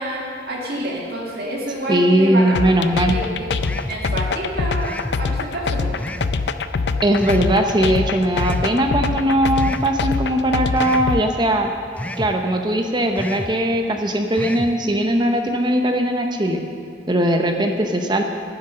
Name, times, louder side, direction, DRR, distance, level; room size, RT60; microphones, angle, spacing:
voice 1, 0.0-2.6 3.1-3.5 3.9-5.9, right 1 dB, 55° right, -3 dB, 2.2 m, -28 dB
voice 2, 1.9-3.1 7.0-11.7 12.2-16.6 17.1-18.2, right 1 dB, 25° right, 4 dB, 0.7 m, -19 dB
sound 1, 2.5-11.2, left 4 dB, 70° left, 0.5 m, -23 dB
sound 2, 3.6-4.0 4.8-5.2 6.0-6.3 7.2-7.5 8.3-8.7 9.6-9.9 10.8-11.1 12.0-12.3 13.1-13.5 14.3-14.7, left 1 dB, 10° left, 0.4 m, -30 dB
10.0 x 9.9 x 6.5 m, 2.6 s
head